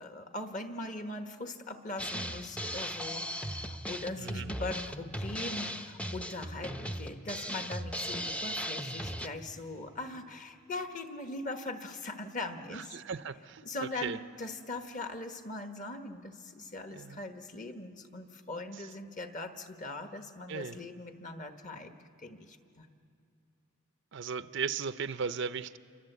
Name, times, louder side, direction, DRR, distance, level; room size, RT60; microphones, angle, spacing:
voice 1, 0.0-13.0 13.6-21.9 22.2-22.9, left 2 dB, 40° left, 6 dB, 1.3 m, -41 dB
Drum kit, 2.0-9.3, equal, 5° left, 0.6 m, -37 dB
voice 2, 4.2-4.5 12.7-13.6 14.0-14.2 16.9-17.2 20.5-20.8 24.1-25.8, right 6 dB, 55° right, 12 dB, 0.5 m, -36 dB
28.0 x 24.5 x 8.1 m, 2.4 s
head